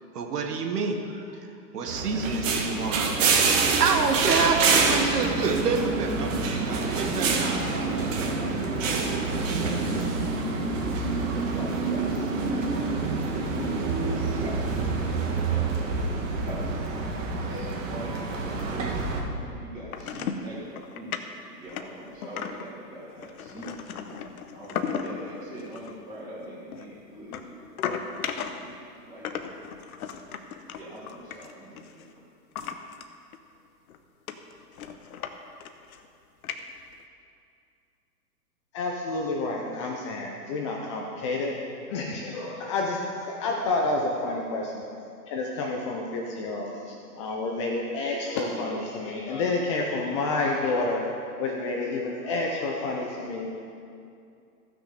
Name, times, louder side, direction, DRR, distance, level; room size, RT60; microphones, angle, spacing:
voice 1, 0.1-1.5 1.7-7.8, right 5 dB, 70° right, 3 dB, 1.6 m, -28 dB
sound 1, 1.9-19.2, right 4 dB, 50° right, 1.7 m, -27 dB
voice 2, 11.0-12.9 13.5-14.1 14.4-15.1 15.5-16.8 17.4-21.1 21.5-23.8 24.5-27.7 28.3-29.4 30.7-32.2, right 1 dB, 10° right, -11 dB, 2.3 m, -42 dB
sound 2, 19.9-20.5 20.8-21.2 21.6-22.7 23.2-25.2 25.6-25.9 26.7-28.8 29.2-32.0 32.6-33.0 33.3-33.4 33.9-34.0 34.3-35.4 35.6-36.1 36.4-37.0, left 7 dB, 60° left, 0.9 m, -35 dB
voice 3, 38.7-41.6 41.9-44.8 45.3-51.0 51.4-53.5, left 2 dB, 20° left, 0 dB, 0.5 m, -29 dB
14.5 x 6.3 x 5.0 m, 2.5 s
hypercardioid pair, 140°, 49 cm